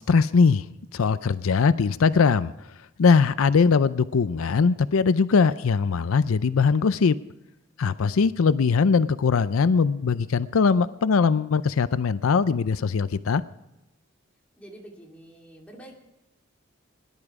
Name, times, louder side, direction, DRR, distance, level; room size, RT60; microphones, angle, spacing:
voice 1, 0.1-0.6 0.9-2.5 3.0-7.2 7.8-13.4, left 5 dB, 85° left, 15 dB, 0.5 m, -21 dB
voice 2, 14.6-15.9, right 1 dB, 5° left, -1 dB, 2.5 m, -46 dB
18.5 x 11.0 x 4.8 m, 0.93 s
head